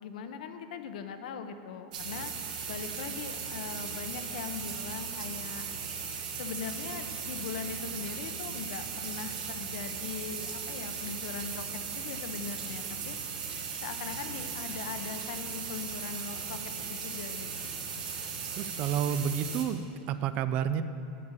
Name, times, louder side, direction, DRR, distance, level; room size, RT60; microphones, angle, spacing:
voice 1, 0.0-2.3 2.7-5.7 6.4-13.1 13.8-17.9, left 6 dB, 70° left, 8 dB, 0.8 m, -40 dB
sound 1, 1.9-19.6, right 6 dB, 80° right, 1.8 m, -37 dB
voice 2, 18.5-20.8, right 8 dB, 30° right, 12 dB, 0.3 m, -30 dB
8.6 x 6.6 x 8.2 m, 2.7 s
supercardioid pair, 170°, 4 cm